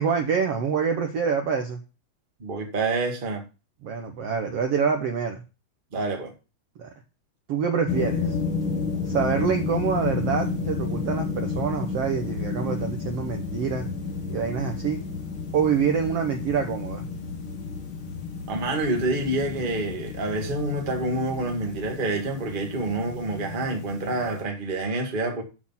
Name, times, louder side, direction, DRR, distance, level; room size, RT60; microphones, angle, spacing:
voice 1, 0.0-1.8 3.8-5.4 6.8-6.9 7.5-8.4 9.0-13.9 14.3-15.0 15.5-17.1, right 6 dB, 80° right, 1.3 m, -26 dB
voice 2, 2.4-3.4 5.9-6.3 18.5-25.4, right 2 dB, 25° right, 1.2 m, -27 dB
sound 1, 7.9-24.4, left 4 dB, 50° left, 1.7 m, -31 dB
8.6 x 6.4 x 5.6 m
omnidirectional pair, 4.3 m